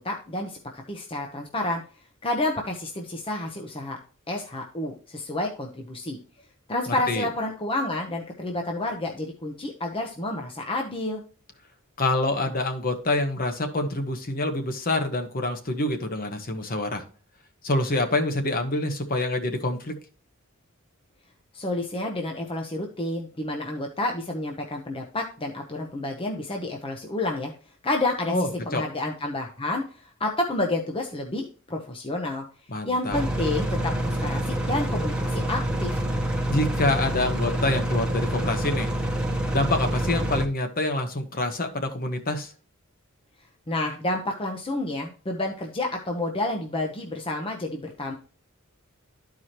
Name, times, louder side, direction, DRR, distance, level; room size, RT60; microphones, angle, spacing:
voice 1, 0.0-1.8 2.2-4.0 4.3-6.2 6.7-11.2 21.5-27.5 27.8-28.3 28.7-32.4 32.9-36.0 43.7-48.1, left 2 dB, 25° left, 1 dB, 0.8 m, -29 dB
voice 2, 6.9-7.3 12.0-17.0 17.6-19.9 28.3-28.8 32.7-33.2 36.5-38.9 39.5-42.5, left 2 dB, 45° left, 6 dB, 1.1 m, -26 dB
sound 1, 33.1-40.5, right 1 dB, 5° right, 1.0 m, -27 dB
12.5 x 4.8 x 2.9 m, 0.38 s
head